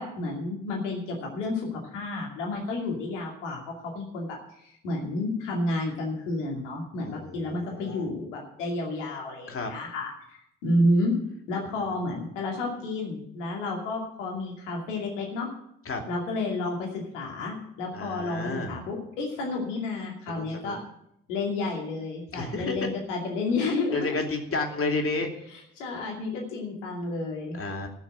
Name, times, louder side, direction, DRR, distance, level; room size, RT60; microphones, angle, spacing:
voice 1, 0.0-11.2 11.5-15.5 16.1-20.8 21.3-24.2 25.5-27.6, left 2 dB, 80° left, -1 dB, 2.7 m, -31 dB
voice 2, 7.0-8.1 9.5-9.7 15.9-16.0 17.9-18.8 20.3-20.7 22.3-22.9 23.9-25.3 27.5-27.9, left 3 dB, 35° left, 3 dB, 2.7 m, -31 dB
15.0 x 6.5 x 7.5 m, 0.74 s
hypercardioid pair, 45°, 36 cm